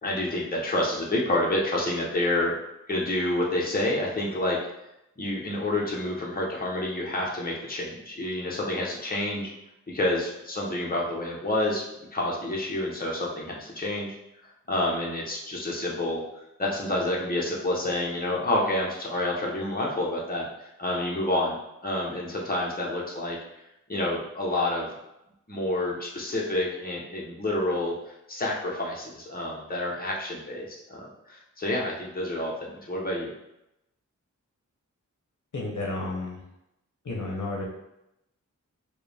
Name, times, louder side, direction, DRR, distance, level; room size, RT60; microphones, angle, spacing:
voice 1, 0.0-2.5 2.9-4.6 5.2-9.5 9.9-11.8 12.1-14.1 14.4-16.2 16.6-21.6 21.8-23.4 23.9-25.0 25.5-33.3, left 1 dB, 30° left, -3 dB, 1.0 m, -28 dB
voice 2, 35.5-36.4 37.0-37.6, left 2 dB, 70° left, -2 dB, 0.9 m, -31 dB
4.6 x 2.3 x 3.4 m, 0.86 s
wide cardioid pair, 65°, 31 cm